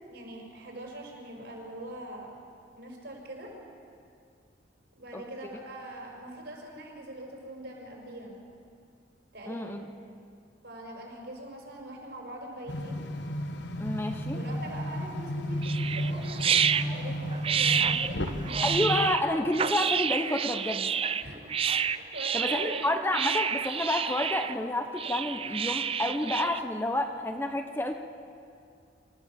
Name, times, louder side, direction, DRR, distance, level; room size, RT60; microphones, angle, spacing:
voice 1, 0.1-2.3 2.7-3.5 5.0-8.4 9.3-9.8 10.6-13.0 14.3-18.7 21.2-21.4 21.8-22.9, right 1 dB, 65° right, -1 dB, 5.4 m, -42 dB
voice 2, 9.5-9.8 13.8-14.4 18.6-20.9 22.3-27.9, left 1 dB, 10° left, 5 dB, 0.8 m, -29 dB
sound 1, 12.7-19.2, equal, 70° left, 1.1 m, -33 dB
Baby Starlings being fed, 15.6-26.6, right 7 dB, 30° right, 0.4 m, -29 dB
27.0 x 14.5 x 7.3 m, 2.4 s
head